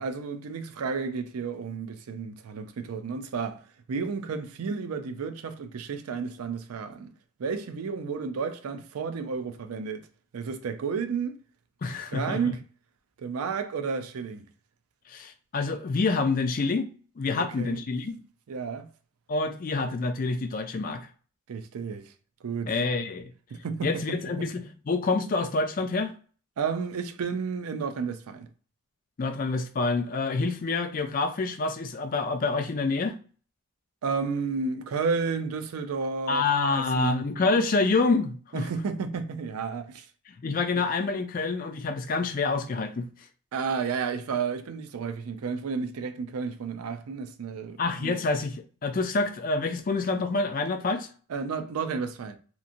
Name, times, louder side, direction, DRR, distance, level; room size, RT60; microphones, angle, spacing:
voice 1, 0.0-3.6 3.9-7.1 7.4-10.1 10.3-11.4 12.1-12.6 13.2-14.5 17.4-17.8 18.5-18.9 21.5-22.1 22.4-22.7 23.5-24.5 26.6-28.5 34.0-36.4 36.7-37.2 38.5-40.1 43.5-48.2 51.3-52.4, right 5 dB, 85° right, 0.4 m, -32 dB
voice 2, 11.8-12.6 15.1-16.9 17.2-18.2 19.3-21.1 22.7-23.3 23.8-26.1 29.2-33.1 36.3-38.7 40.4-43.1 47.8-48.6 48.8-51.1, left 3 dB, 40° left, 0.3 m, -27 dB
2.9 x 2.5 x 2.5 m
head